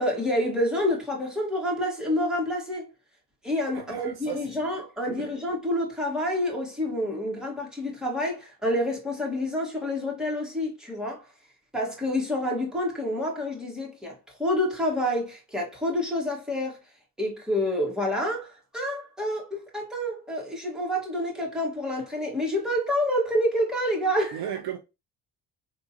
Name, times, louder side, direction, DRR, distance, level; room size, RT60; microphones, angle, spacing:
voice 1, 0.0-2.9 3.4-11.2 11.7-16.8 17.2-24.4, left 1 dB, ahead, 1.8 m, -28 dB
voice 2, 3.7-4.6 5.1-5.3 24.3-24.8, right 10 dB, 50° right, 0.6 m, -35 dB
3.5 x 2.6 x 2.8 m
hypercardioid pair, 55°, 49 cm